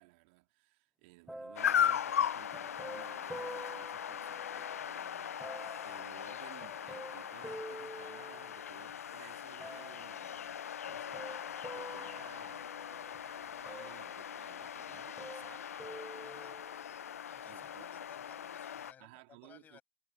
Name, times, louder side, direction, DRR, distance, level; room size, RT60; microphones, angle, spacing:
voice 1, 0.0-15.8 17.4-17.9 19.0-19.8, right 26 dB, 45° right, 3.0 m, -58 dB
sound 1, 1.3-4.9 5.4-8.9 9.6-10.3 10.9-13.2 13.7-14.7 14.9-17.0 17.6-17.7, right 1 dB, ahead, 0.4 m, -49 dB
sound 2, 1.6-18.9, left 9 dB, 70° left, 0.5 m, -39 dB
voice 2, 16.2-16.6 17.3-19.1 19.4-19.8, left 9 dB, 20° left, 6.3 m, -59 dB
hypercardioid pair, 120°, 8 cm